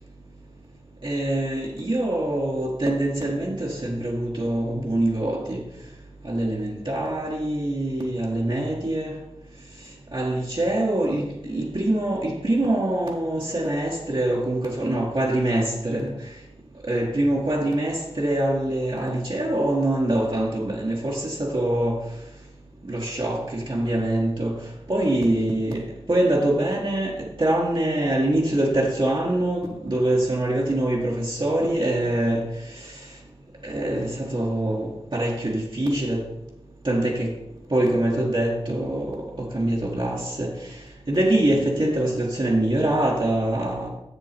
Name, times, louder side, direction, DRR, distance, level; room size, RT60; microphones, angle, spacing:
voice 1, 1.0-5.6 6.2-9.1 10.1-16.1 16.9-22.0 22.9-24.6 24.9-25.8 26.1-32.5 33.6-36.3 36.8-37.3 37.7-40.5 41.1-43.9, right 1 dB, 50° right, 1.4 m, -24 dB
7.1 x 6.9 x 4.4 m
wide cardioid pair, 40°, 11 cm